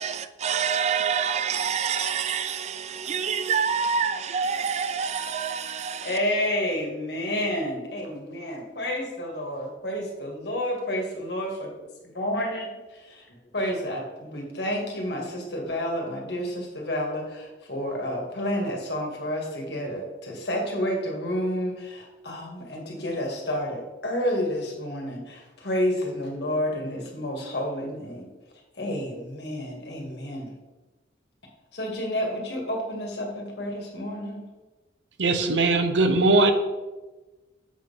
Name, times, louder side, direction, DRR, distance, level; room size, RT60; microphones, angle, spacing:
voice 1, 0.0-6.2, right 6 dB, 35° right, 0.3 m, -27 dB
voice 2, 6.0-11.7 12.2-13.1 13.5-28.3 28.8-30.5 31.7-34.5, equal, 65° left, 1.8 m, -30 dB
voice 3, 35.2-36.5, right 2 dB, 85° right, 0.8 m, -20 dB
7.4 x 3.9 x 5.4 m
head